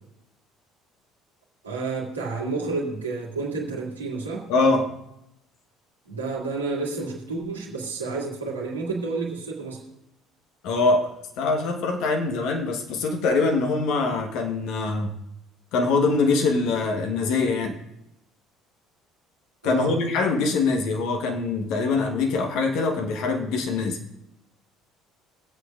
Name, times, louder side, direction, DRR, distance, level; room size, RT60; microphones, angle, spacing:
voice 1, 1.6-4.5 6.1-9.8 19.6-20.0, right 3 dB, 85° right, -4 dB, 2.3 m, -30 dB
voice 2, 4.5-4.9 10.6-11.1 11.4-15.1 15.7-17.7 19.6-24.0, left 3 dB, 60° left, 3 dB, 1.4 m, -23 dB
22.5 x 8.1 x 2.5 m, 0.85 s
figure-of-eight pair, 60°, 0 cm